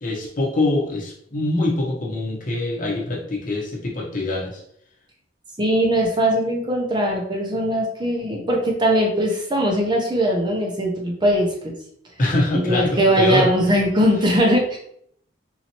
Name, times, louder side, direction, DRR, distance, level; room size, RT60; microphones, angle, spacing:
voice 1, 0.0-4.6 12.2-13.5, left 2 dB, 40° left, -2 dB, 0.9 m, -24 dB
voice 2, 5.6-11.7 12.5-14.8, equal, 25° right, -1 dB, 0.6 m, -20 dB
4.2 x 2.8 x 2.9 m, 0.68 s
head